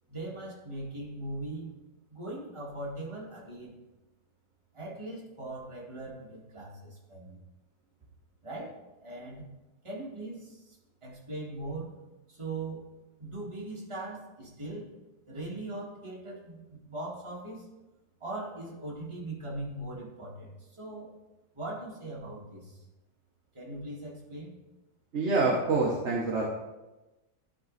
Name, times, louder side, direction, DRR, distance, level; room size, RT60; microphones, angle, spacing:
voice 1, 0.1-1.7 2.1-3.8 4.7-7.4 8.4-9.5 9.8-10.8 11.0-11.9 12.3-12.8 13.2-14.9 15.3-17.7 18.2-21.1 21.5-22.8 23.5-24.5, right 2 dB, 15° right, -5 dB, 1.9 m, -40 dB
voice 2, 25.1-26.4, right 3 dB, 45° right, -2 dB, 1.2 m, -26 dB
12.0 x 4.2 x 4.0 m, 1.1 s
omnidirectional pair, 1.9 m